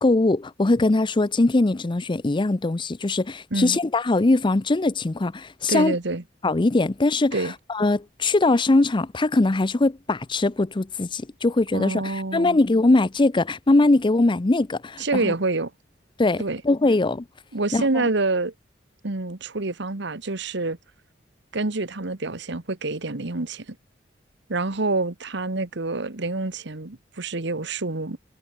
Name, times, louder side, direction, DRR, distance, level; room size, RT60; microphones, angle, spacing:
voice 1, 0.0-6.0 6.4-15.3 16.2-17.2 17.7-18.1, left 2 dB, 25° left, 0.6 m, -21 dB
voice 2, 5.7-6.2 7.3-7.5 11.7-12.6 15.0-15.7 16.4-16.6 17.5-18.5 19.0-20.8 21.5-23.8 24.5-28.2, right 3 dB, 65° right, 1.5 m, -27 dB
head